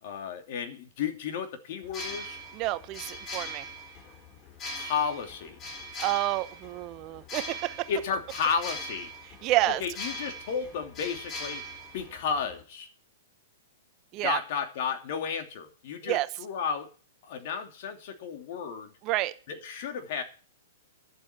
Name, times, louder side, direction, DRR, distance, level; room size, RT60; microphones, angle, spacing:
voice 1, 0.0-2.4 4.8-5.6 7.9-9.1 9.6-11.6 11.9-12.9 14.2-16.9 17.2-18.9 19.5-20.2, left 6 dB, 55° left, 5 dB, 2.8 m, -33 dB
sound 1, 1.8-12.6, equal, 30° left, 3.3 m, -41 dB
voice 2, 2.5-3.6 6.0-7.9 9.4-9.8 14.1-14.4 16.0-16.3 19.0-19.3, right 17 dB, 35° right, 14 dB, 0.8 m, -29 dB
11.5 x 7.5 x 8.7 m, 0.39 s
hypercardioid pair, 125°, 0 cm